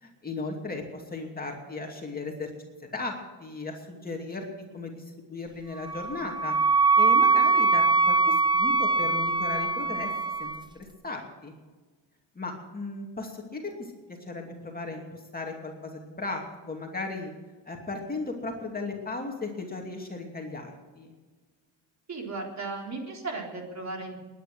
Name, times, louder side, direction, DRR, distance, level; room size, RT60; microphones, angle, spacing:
voice 1, 0.0-4.5 4.7-6.6 7.0-10.1 10.4-11.5 12.3-13.9 14.2-17.3 17.7-21.1, left 3 dB, 20° left, 1 dB, 2.6 m, -36 dB
Wind instrument woodwind instrument, 5.8-10.6, right 4 dB, 10° right, 0.7 m, -23 dB
voice 2, 22.1-24.2, right 3 dB, 35° right, 1 dB, 3.7 m, -36 dB
20.5 x 10.0 x 6.3 m, 1.3 s
cardioid pair, 100°, 45 cm